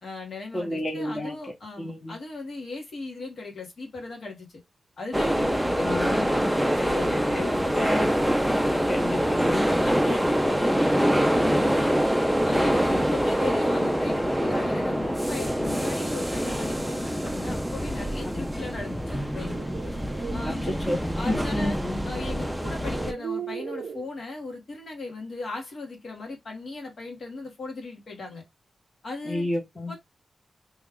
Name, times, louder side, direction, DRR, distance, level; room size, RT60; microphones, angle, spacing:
voice 1, 0.0-4.6 5.0-8.0 8.6-8.9 9.8-12.1 12.4-19.7 20.3-20.7 21.2-28.4 29.0-29.5 29.9-30.0, left 3 dB, 60° left, 1.4 m, -37 dB
voice 2, 0.5-1.4 1.8-2.2 5.8-6.1 7.3-7.4 7.7-8.1 8.9-9.7 12.9-13.0 18.2-18.6 20.4-21.0 21.3-22.0 29.3-30.0, left 1 dB, 20° left, 1.0 m, -30 dB
sound 1, 5.1-23.1, equal, ahead, 0.4 m, -25 dB
sound 2, 19.2-20.5 21.9-22.0 22.7-24.1, right 7 dB, 80° right, 0.4 m, -37 dB
3.1 x 2.3 x 3.5 m
wide cardioid pair, 165°, 0 cm